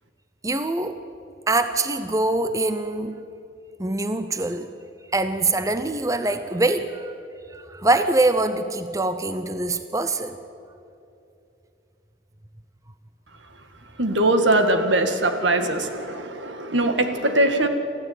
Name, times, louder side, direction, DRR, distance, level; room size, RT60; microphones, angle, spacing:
voice 1, 0.4-1.0 1.5-3.1 3.8-4.7 5.1-7.2 7.5-10.4, right 2 dB, 15° right, 10 dB, 0.6 m, -24 dB
voice 2, 14.0-17.7, right 1 dB, 80° right, 7 dB, 2.0 m, -21 dB
29.0 x 14.5 x 8.8 m, 2.8 s
head